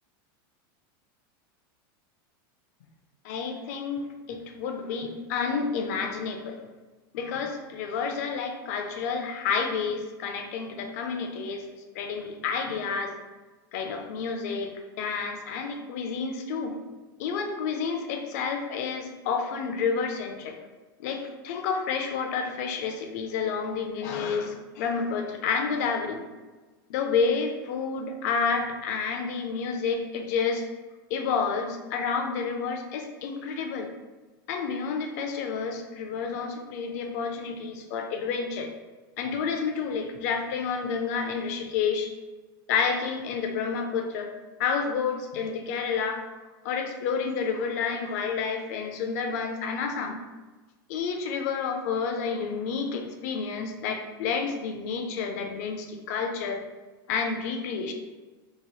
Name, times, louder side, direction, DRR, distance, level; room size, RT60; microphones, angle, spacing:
voice 1, 3.2-6.6 7.1-11.7 11.9-13.2 13.7-16.8 17.2-20.6 21.0-26.2 26.9-30.7 31.1-33.9 34.5-38.7 39.2-42.1 42.7-44.3 44.6-46.2 46.6-50.2 50.9-56.6 57.1-57.9, left 5 dB, 45° left, 4 dB, 0.4 m, -30 dB
3.0 x 2.8 x 2.2 m, 1.3 s
supercardioid pair, 175°, 12 cm